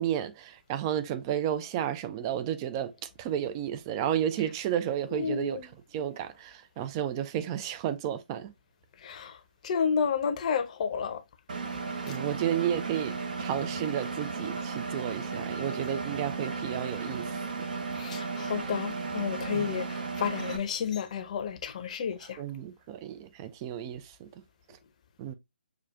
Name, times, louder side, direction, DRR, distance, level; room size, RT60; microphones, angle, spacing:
voice 1, 0.0-5.6 5.9-8.5 12.0-17.7 19.5-19.7 22.2-24.3 25.2-25.3, right 10 dB, 25° right, 0.4 m, -32 dB
voice 2, 5.1-5.6 9.0-9.4 9.6-11.2 12.1-12.2 18.0-22.4, left 7 dB, 40° left, 0.6 m, -31 dB
Engine, 11.5-20.6, right 4 dB, 50° right, 0.7 m, -35 dB
6.4 x 2.3 x 2.3 m
figure-of-eight pair, 135°, 6 cm